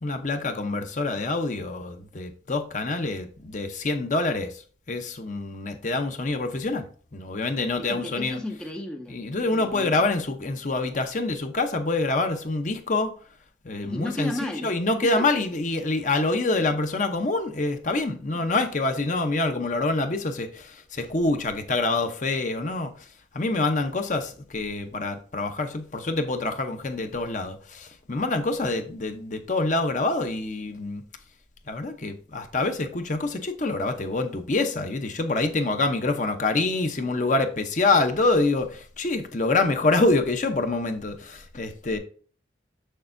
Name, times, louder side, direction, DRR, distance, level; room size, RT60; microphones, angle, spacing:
voice 1, 0.0-4.6 4.9-6.9 7.1-8.4 9.1-13.1 13.6-22.9 23.3-31.0 31.7-42.0, left 2 dB, 40° left, 0.7 m, -26 dB
voice 2, 7.8-10.0 13.8-15.3, left 1 dB, 5° left, 0.4 m, -34 dB
6.8 x 6.5 x 2.6 m
head